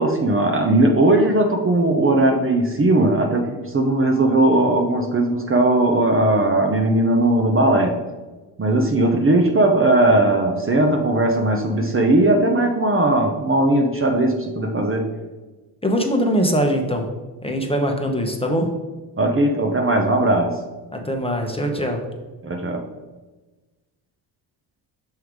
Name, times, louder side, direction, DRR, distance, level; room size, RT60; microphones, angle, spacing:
voice 1, 0.0-8.0 8.6-15.1 19.2-20.5 22.4-22.8, right 2 dB, 25° right, 3 dB, 0.7 m, -18 dB
voice 2, 15.8-17.1 17.4-18.7 20.9-22.0, equal, 10° left, 2 dB, 0.9 m, -22 dB
6.4 x 3.5 x 4.6 m, 1.2 s
cardioid pair, 80°, 47 cm